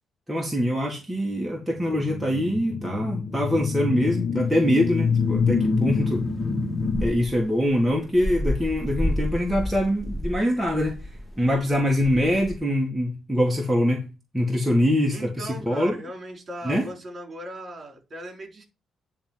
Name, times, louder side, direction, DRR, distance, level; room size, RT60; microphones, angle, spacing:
voice 1, 0.3-6.2 7.0-11.0 11.4-14.1 14.3-15.9 16.6-16.9, equal, 5° right, 1.8 m, -24 dB
sound 1, 1.8-7.1, left 5 dB, 30° left, 1.2 m, -26 dB
sound 2, 4.4-12.6, equal, 15° left, 2.4 m, -32 dB
voice 2, 15.1-18.6, right 1 dB, 35° right, 3.9 m, -38 dB
10.0 x 3.6 x 7.3 m
cardioid pair, 90°, 0 cm